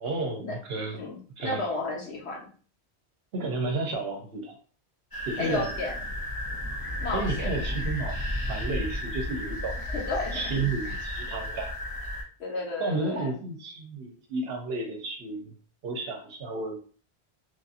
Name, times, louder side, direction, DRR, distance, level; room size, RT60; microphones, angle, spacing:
voice 1, 0.0-1.0 1.4-1.6 3.3-4.6 5.3-5.7 7.1-8.2 8.5-9.9 10.3-11.7 12.8-15.5 15.8-16.8, right 3 dB, 70° right, 3 dB, 0.8 m, -32 dB
voice 2, 0.9-2.5 5.4-6.0 7.0-7.5 9.9-10.5 12.4-13.3, left 3 dB, 80° left, -2 dB, 1.3 m, -32 dB
sound 1, 5.1-12.2, left 1 dB, 30° left, 0.4 m, -33 dB
3.1 x 2.7 x 2.4 m, 0.41 s
omnidirectional pair, 1.1 m